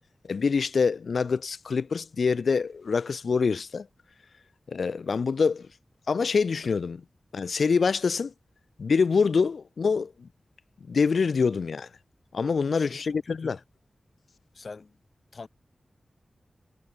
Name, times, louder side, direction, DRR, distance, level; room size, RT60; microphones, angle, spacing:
voice 1, 0.3-3.9 4.7-5.7 6.1-7.0 7.3-8.3 8.8-10.3 10.9-11.9 12.3-13.6, left 5 dB, 75° left, 0.7 m, -25 dB
voice 2, 12.7-13.6 14.5-14.9 15.3-15.5, left 4 dB, 55° left, 1.6 m, -43 dB
wide cardioid pair, 100°, 0 cm